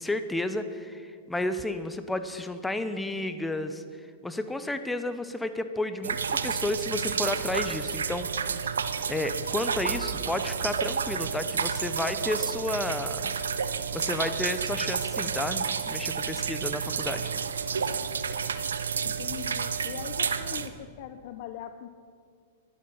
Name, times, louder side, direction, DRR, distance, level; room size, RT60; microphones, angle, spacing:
voice 1, 0.0-3.8 4.2-8.5 9.1-13.3 13.9-17.3, left 2 dB, 5° left, 10 dB, 0.7 m, -32 dB
sound 1, 6.0-20.7, right 6 dB, 85° right, 0.7 m, -30 dB
voice 2, 19.0-21.9, left 11 dB, 55° left, 9 dB, 0.6 m, -41 dB
12.0 x 11.5 x 5.5 m, 2.1 s
hypercardioid pair, 110°, 0 cm